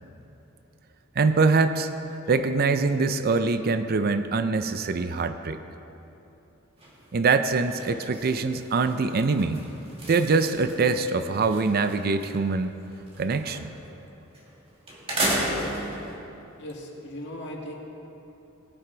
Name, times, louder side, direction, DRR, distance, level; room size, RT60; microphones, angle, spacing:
voice 1, 1.2-1.9 2.3-5.6 7.1-9.6 10.1-12.8 13.2-13.7, right 4 dB, 45° right, 10 dB, 0.5 m, -24 dB
sound 1, 6.8-7.1 7.4-12.4 12.7-13.9 14.3-14.5 14.9-16.2, right 1 dB, 30° right, 2.1 m, -33 dB
voice 2, 16.6-17.7, left 1 dB, 60° left, -1 dB, 2.0 m, -38 dB
20.5 x 9.2 x 3.9 m, 3.0 s
head